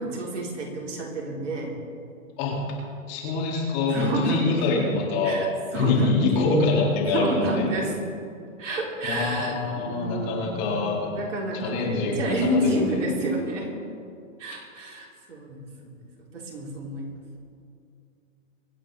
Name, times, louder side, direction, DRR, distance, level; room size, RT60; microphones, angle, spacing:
voice 1, 0.0-1.7 3.9-4.6 5.2-5.5 5.7-6.2 7.1-7.9 8.6-10.7 11.1-13.7 14.4-16.0 16.3-17.1, right 1 dB, 65° right, -2 dB, 3.9 m, -29 dB
voice 2, 3.1-5.4 5.7-7.7 9.0-11.1 11.5-13.0, left 3 dB, 35° left, -3 dB, 4.4 m, -25 dB
25.0 x 8.7 x 4.2 m, 2.4 s
hypercardioid pair, 140°, 40 cm